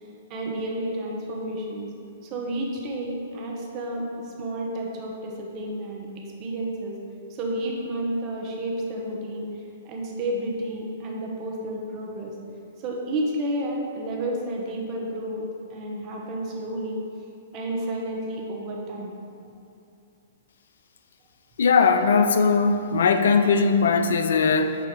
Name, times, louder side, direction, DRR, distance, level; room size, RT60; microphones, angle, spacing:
voice 1, 0.3-1.9 2.2-6.1 6.4-7.0 7.3-9.5 9.8-12.3 12.8-17.0 17.5-19.1, right 1 dB, 35° right, -1 dB, 1.1 m, -31 dB
voice 2, 21.6-24.8, left 5 dB, 70° left, 8 dB, 0.4 m, -19 dB
6.9 x 2.8 x 4.8 m, 2.6 s
hypercardioid pair, 115°, 0 cm